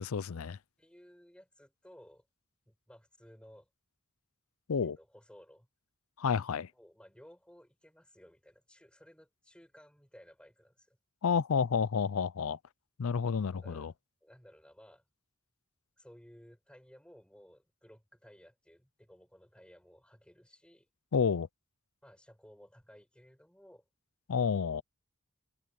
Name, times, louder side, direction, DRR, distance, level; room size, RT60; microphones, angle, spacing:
voice 1, 0.0-0.6 4.7-5.0 6.2-6.7 11.2-12.6 13.0-13.9 21.1-21.5 24.3-24.8, left 6 dB, 85° left, 0.5 m, -30 dB
voice 2, 0.8-2.3 2.7-3.7 4.8-5.7 6.7-11.0 13.6-13.9 14.2-15.0 16.0-20.9 22.0-23.9, equal, 5° left, 6.3 m, -58 dB
head